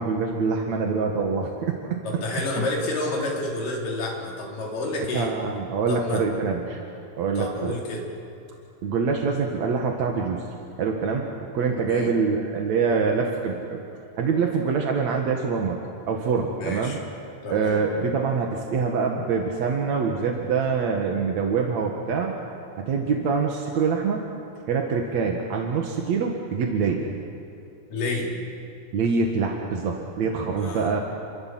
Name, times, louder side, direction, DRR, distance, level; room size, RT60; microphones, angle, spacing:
voice 1, 0.0-2.0 2.6-2.7 5.1-6.8 7.2-7.8 8.8-10.4 10.8-11.3 11.5-13.8 14.2-15.8 16.1-17.0 17.5-22.4 22.8-24.2 24.7-27.1 28.9-31.0, right 5 dB, 55° right, 1 dB, 2.1 m, -25 dB
voice 2, 2.0-5.3 5.9-6.2 7.4-8.1 11.8-12.1 16.5-17.0 17.4-17.8 27.9-28.3 30.6-31.0, left 2 dB, 50° left, -2 dB, 5.1 m, -29 dB
28.5 x 23.5 x 7.7 m, 2.7 s
omnidirectional pair, 5.3 m